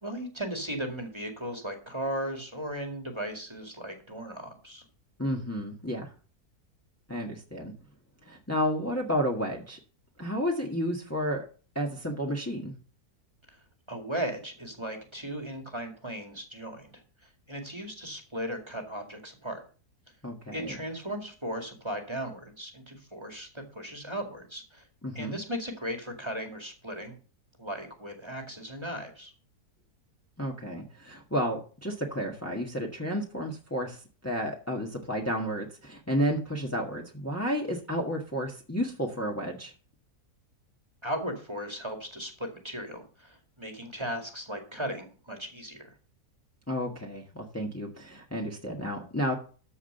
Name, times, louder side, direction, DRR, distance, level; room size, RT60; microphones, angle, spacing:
voice 1, 0.0-4.8 13.9-16.9 17.5-19.6 20.5-24.9 25.1-27.2 27.6-29.3 41.0-45.9, equal, 15° right, 3 dB, 2.2 m, -36 dB
voice 2, 5.2-6.1 7.1-7.7 8.2-9.8 10.2-11.4 11.7-12.7 20.2-20.8 25.0-25.4 30.4-39.7 46.7-49.3, equal, 10° left, 0 dB, 1.5 m, -31 dB
13.5 x 4.9 x 6.7 m, 0.39 s
omnidirectional pair, 1.7 m